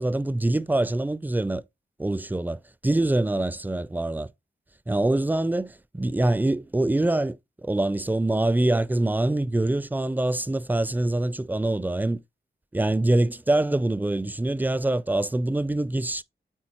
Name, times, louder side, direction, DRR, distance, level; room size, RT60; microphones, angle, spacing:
voice 1, 0.0-1.6 2.0-4.3 4.9-12.2 12.7-16.2, right 2 dB, 10° right, 0.4 m, -24 dB
9.0 x 3.8 x 2.9 m
wide cardioid pair, 65°, 19 cm